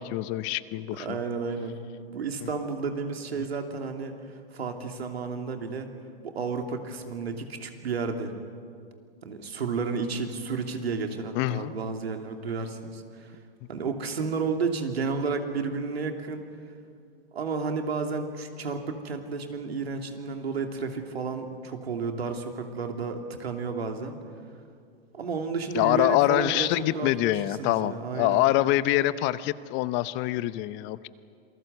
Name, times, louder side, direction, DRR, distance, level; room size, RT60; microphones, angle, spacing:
voice 1, 0.0-1.2 11.3-11.7 25.7-31.1, left 16 dB, 40° left, 16 dB, 0.8 m, -25 dB
voice 2, 0.9-1.8 2.1-4.1 4.5-5.9 6.2-8.3 9.2-13.4 13.7-16.4 17.3-24.2 25.1-26.7 26.9-28.4, right 4 dB, 90° right, 4 dB, 2.9 m, -32 dB
27.0 x 19.5 x 8.0 m, 2.3 s
hypercardioid pair, 115°, 30 cm